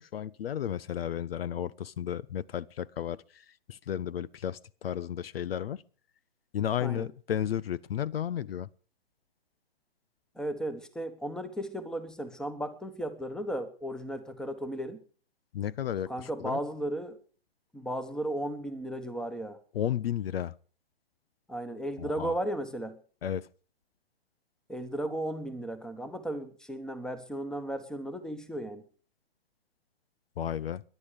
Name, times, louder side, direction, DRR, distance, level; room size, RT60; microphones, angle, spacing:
voice 1, 0.0-3.4 3.7-5.8 6.5-8.7 15.5-16.6 19.7-20.5 22.0-22.3 23.2-23.5 30.4-30.8, left 10 dB, 65° left, 0.6 m, -33 dB
voice 2, 10.3-15.0 16.1-17.2 17.7-19.6 21.5-23.0 24.7-28.8, right 1 dB, ahead, 1.2 m, -35 dB
19.0 x 11.0 x 5.1 m
hypercardioid pair, 135°, 32 cm